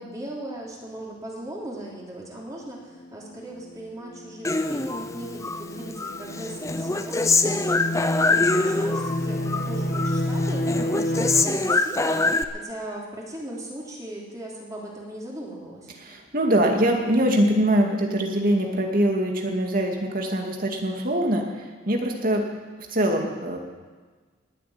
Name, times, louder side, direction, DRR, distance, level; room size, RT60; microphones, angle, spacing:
voice 1, 0.0-15.9, right 1 dB, 20° right, -4 dB, 3.4 m, -38 dB
sound 1, 2.7-11.4, left 1 dB, 50° left, 1.2 m, -30 dB
Human voice, 4.4-5.6 6.0-9.2 9.5-10.2 10.4-12.4, left 3 dB, 15° left, 0.6 m, -24 dB
voice 2, 16.0-22.5 22.9-23.6, right 1 dB, 45° right, 2 dB, 2.3 m, -23 dB
19.0 x 7.8 x 9.5 m, 1.4 s
head